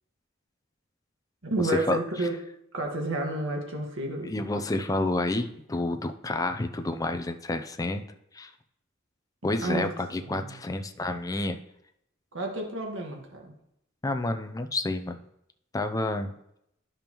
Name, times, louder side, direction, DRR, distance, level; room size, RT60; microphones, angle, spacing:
voice 1, 1.4-2.3 2.7-4.3 9.6-9.9 10.2-10.5 12.3-13.5, right 1 dB, 70° right, 1 dB, 1.6 m, -30 dB
voice 2, 4.2-8.0 8.3-8.5 9.4-11.6 14.0-15.2 15.7-16.3, left 2 dB, 15° left, 7 dB, 0.5 m, -29 dB
12.5 x 5.2 x 3.0 m, 0.77 s
head